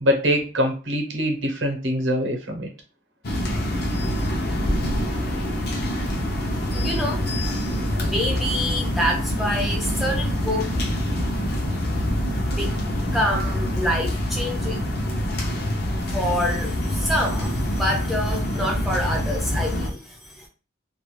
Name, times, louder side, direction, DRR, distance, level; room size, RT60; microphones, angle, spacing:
voice 1, 0.0-2.7, equal, 80° right, 3 dB, 0.8 m, -23 dB
sound 1, 3.2-19.9, equal, 55° left, 0.6 m, -25 dB
voice 2, 6.7-10.8 11.1-11.2 12.5-12.8 13.1-14.8 16.1-20.5, left 1 dB, ahead, 0 dB, 0.4 m, -27 dB
2.4 x 2.2 x 3.1 m, 0.35 s
head